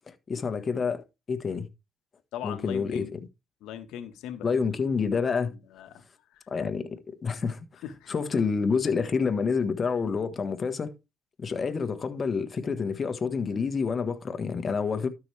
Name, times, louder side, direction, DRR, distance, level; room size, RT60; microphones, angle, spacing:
voice 1, 0.1-1.0 1.3-1.7 2.4-3.1 4.4-5.5 6.5-7.6 8.1-10.9 11.4-15.1, left 5 dB, 40° left, 1.5 m, -28 dB
voice 2, 2.3-3.1 3.6-4.5 5.7-6.0 6.3-6.4 7.8-8.5, left 10 dB, 80° left, 1.5 m, -39 dB
13.0 x 6.3 x 3.4 m
cardioid pair, 90°, 0 cm